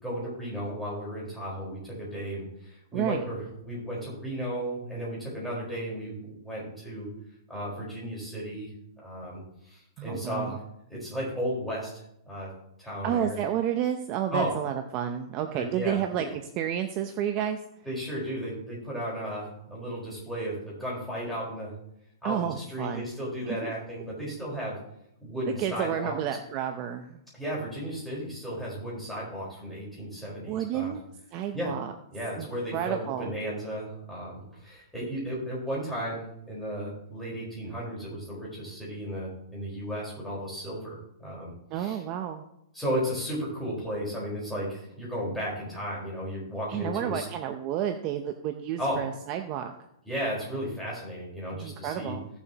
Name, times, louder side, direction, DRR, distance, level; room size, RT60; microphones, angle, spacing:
voice 1, 0.0-7.1 7.5-8.7 9.0-10.6 10.9-12.5 12.8-13.4 14.3-14.5 15.5-16.3 17.8-21.7 22.2-24.7 25.2-26.2 27.4-30.9 31.5-31.7 32.1-36.2 36.5-42.0 42.7-47.2 48.8-49.0 50.0-52.2, equal, 5° left, -6 dB, 4.5 m, -34 dB
voice 2, 2.9-3.2 10.0-10.6 13.0-17.6 22.2-23.1 23.5-23.7 25.5-27.2 30.5-31.0 31.3-31.9 32.4-33.3 41.7-42.4 46.7-49.7 51.5-52.2, right 10 dB, 35° right, 6 dB, 0.7 m, -31 dB
16.5 x 7.0 x 2.9 m, 0.79 s
hypercardioid pair, 150°, 2 cm